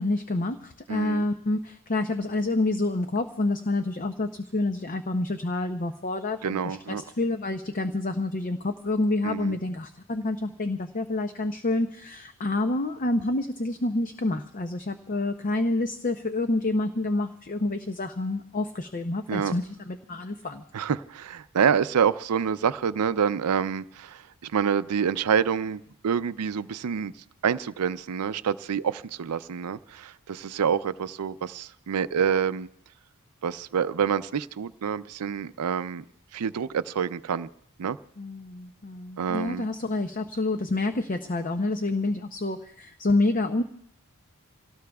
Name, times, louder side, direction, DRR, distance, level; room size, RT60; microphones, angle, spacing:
voice 1, 0.0-6.8 7.2-20.6 38.2-43.6, left 2 dB, 40° left, 8 dB, 0.6 m, -28 dB
voice 2, 0.9-1.3 6.4-7.0 9.2-9.6 19.3-19.6 20.7-27.1 27.4-32.7 33.4-36.0 36.3-37.5 37.8-38.0 39.2-39.7, right 7 dB, 90° right, 14 dB, 0.5 m, -27 dB
28.0 x 17.5 x 2.3 m, 0.72 s
head